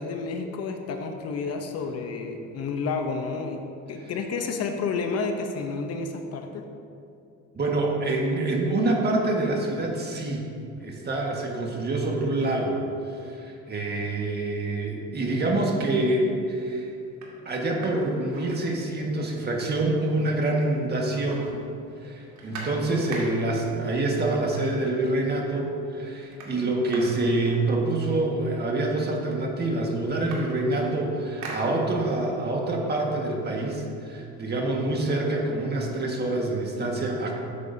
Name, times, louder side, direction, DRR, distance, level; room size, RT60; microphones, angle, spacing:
voice 1, 0.0-6.6, left 4 dB, 50° left, 5 dB, 0.9 m, -30 dB
voice 2, 7.5-10.5 10.8-12.8 13.2-16.9 17.4-21.5 22.0-37.4, right 2 dB, 30° right, -1 dB, 1.7 m, -26 dB
sound 1, 15.9-16.1 16.6-16.7 17.1-19.2 19.5-19.6 19.8-20.7 20.9-23.7 24.6-24.7 25.1-25.6 25.8-28.3 29.1-29.2 29.5-32.3 32.7-34.4, right 2 dB, 65° right, 2.3 m, -43 dB
13.0 x 8.2 x 2.8 m, 2.5 s
cardioid pair, 110°, 31 cm